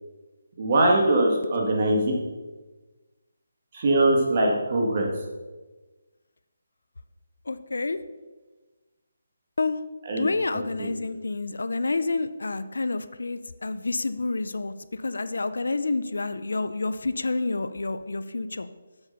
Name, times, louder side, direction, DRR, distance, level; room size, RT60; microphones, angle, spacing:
voice 1, 0.6-2.1 3.7-5.1 10.1-10.3, right 1 dB, 35° right, 0 dB, 2.0 m, -21 dB
voice 2, 7.5-8.0 9.6-9.8 10.2-14.7 15.0-18.7, left 3 dB, 85° left, 12 dB, 0.6 m, -29 dB
8.0 x 6.9 x 5.5 m, 1.2 s
hypercardioid pair, 170°, 0 cm